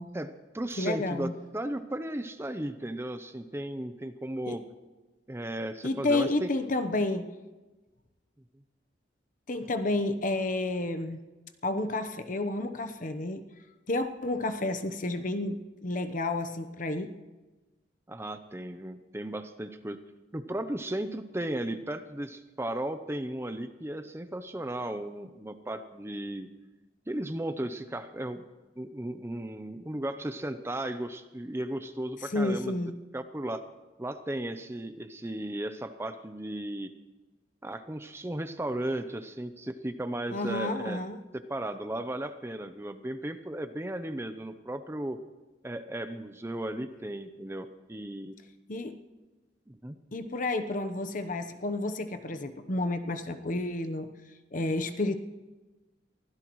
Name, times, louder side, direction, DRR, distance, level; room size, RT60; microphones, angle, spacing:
voice 1, 0.1-4.6 5.3-6.5 18.1-20.0 20.3-26.5 27.1-28.5 28.8-32.7 33.1-33.6 34.0-36.9 37.6-41.0 41.5-45.2 45.6-48.4 49.7-50.0, right 1 dB, 15° right, 9 dB, 0.6 m, -35 dB
voice 2, 0.8-1.3 4.5-4.6 5.8-7.2 9.5-11.2 11.6-13.4 13.9-17.1 32.3-32.9 40.3-41.2 48.7-48.9 50.1-54.1 54.5-55.2, left 2 dB, 45° left, 8 dB, 0.9 m, -30 dB
24.0 x 16.0 x 3.1 m, 1.2 s
head